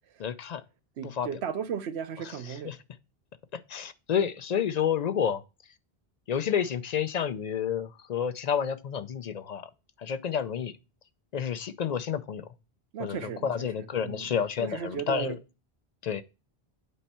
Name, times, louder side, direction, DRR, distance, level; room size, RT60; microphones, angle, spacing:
voice 1, 0.2-0.6 1.0-1.3 2.7-2.8 3.5-5.4 6.3-9.7 10.0-10.7 11.3-12.4 13.0-15.4 16.0-16.2, left 8 dB, 55° left, 0.5 m, -30 dB
voice 2, 1.0-2.8 12.9-14.3 14.6-15.4, right 8 dB, 85° right, 1.0 m, -36 dB
8.4 x 4.4 x 4.3 m
omnidirectional pair, 1.1 m